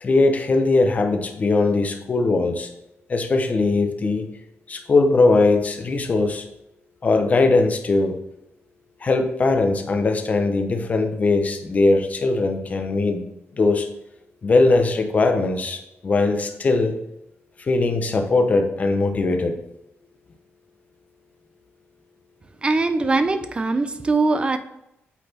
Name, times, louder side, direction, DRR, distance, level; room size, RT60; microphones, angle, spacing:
voice 1, 0.0-2.7 3.1-4.3 4.7-6.4 7.0-8.2 9.0-13.3 13.5-13.9 14.4-17.0 17.6-19.6, left 3 dB, 35° left, 5 dB, 0.9 m, -20 dB
voice 2, 22.6-24.6, right 3 dB, 25° right, 10 dB, 0.5 m, -21 dB
8.1 x 4.1 x 4.2 m, 0.84 s
wide cardioid pair, 155°, 5 cm